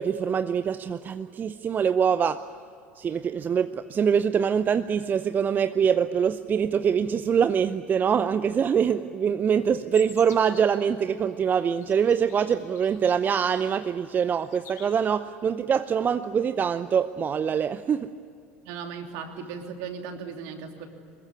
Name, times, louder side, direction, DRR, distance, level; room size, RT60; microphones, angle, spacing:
voice 1, 0.0-2.4 3.0-18.1, right 7 dB, 30° right, 12 dB, 0.7 m, -24 dB
sound 1, 9.9-10.9 11.5-13.1 13.7-14.1 14.4-15.1, left 7 dB, 40° left, 6.5 m, -49 dB
voice 2, 18.6-20.9, right 6 dB, 55° right, 4 dB, 3.1 m, -37 dB
24.0 x 21.5 x 9.7 m, 2.4 s
figure-of-eight pair, 70°, 6 cm